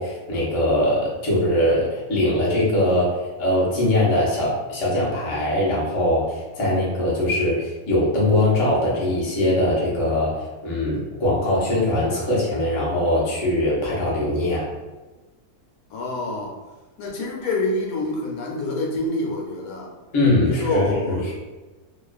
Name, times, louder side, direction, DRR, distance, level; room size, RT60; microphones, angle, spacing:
voice 1, 0.0-14.7 20.1-21.3, left 1 dB, 40° left, -6 dB, 0.4 m, -21 dB
voice 2, 15.9-16.5 17.0-19.9 20.4-21.3, left 2 dB, 75° left, -2 dB, 1.0 m, -27 dB
2.5 x 2.3 x 2.3 m, 1.2 s
omnidirectional pair, 1.5 m